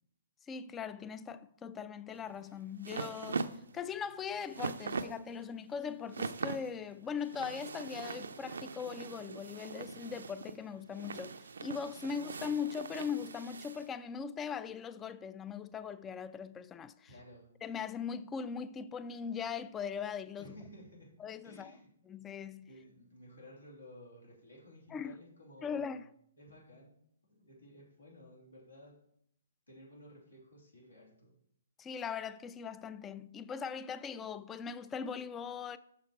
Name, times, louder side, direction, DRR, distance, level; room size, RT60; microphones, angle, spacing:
voice 1, 0.5-3.5 3.7-17.1 17.6-20.5 21.2-21.7 22.1-22.7 24.9-25.2 25.6-26.0 31.8-35.8, left 6 dB, 15° left, 0.3 m, -40 dB
sound 1, 2.2-13.9, right 4 dB, 70° right, 0.4 m, -42 dB
voice 2, 17.0-17.5 20.4-21.1 21.4-21.9 22.7-26.0 26.4-27.0 27.2-29.0 29.7-31.3, equal, 85° left, 3.0 m, -55 dB
6.4 x 6.0 x 4.6 m
figure-of-eight pair, 130°, 0 cm